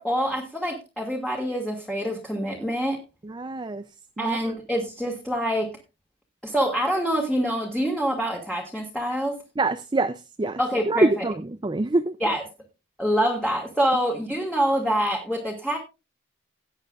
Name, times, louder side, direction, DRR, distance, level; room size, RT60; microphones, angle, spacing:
voice 1, 0.0-3.0 4.2-5.7 6.4-9.4 10.6-11.2 12.2-12.4 13.0-15.8, equal, 5° left, -1 dB, 1.7 m, -26 dB
voice 2, 3.2-3.8 4.2-4.4 9.6-10.6 10.9-11.3 11.6-12.1, right 2 dB, 20° right, 10 dB, 0.4 m, -24 dB
17.5 x 8.9 x 2.4 m, 0.27 s
head